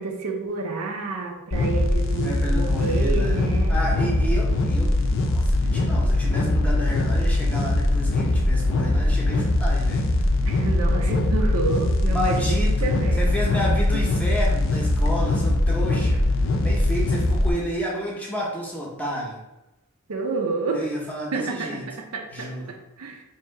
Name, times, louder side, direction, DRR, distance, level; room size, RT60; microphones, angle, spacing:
voice 1, 0.0-3.8 10.4-13.3 13.9-14.0 20.1-20.9 21.3-21.8 22.1-23.2, right 4 dB, 90° right, 2 dB, 0.6 m, -29 dB
sound 1, 1.5-17.5, left 2 dB, 60° left, 0.5 m, -21 dB
voice 2, 2.2-3.4 3.7-10.3 12.1-12.9 13.2-19.4 20.7-21.8 22.3-22.7, equal, 5° left, -3 dB, 0.7 m, -31 dB
2.9 x 2.7 x 4.4 m, 0.96 s
head